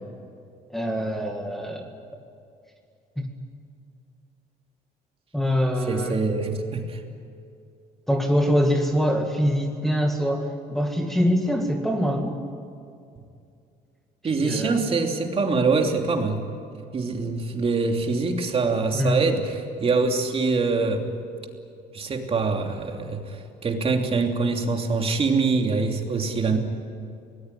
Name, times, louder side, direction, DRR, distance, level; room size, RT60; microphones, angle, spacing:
voice 1, 0.7-1.9 3.2-3.3 5.3-6.2 8.1-12.4 14.2-14.7 18.9-19.2 26.5-26.6, equal, ahead, 1 dB, 2.1 m, -24 dB
voice 2, 5.9-7.0 14.2-16.4 16.9-21.1 21.9-26.6, right 4 dB, 35° right, 3 dB, 3.0 m, -24 dB
24.5 x 19.5 x 9.9 m, 2.4 s
cardioid pair, 110°, 17 cm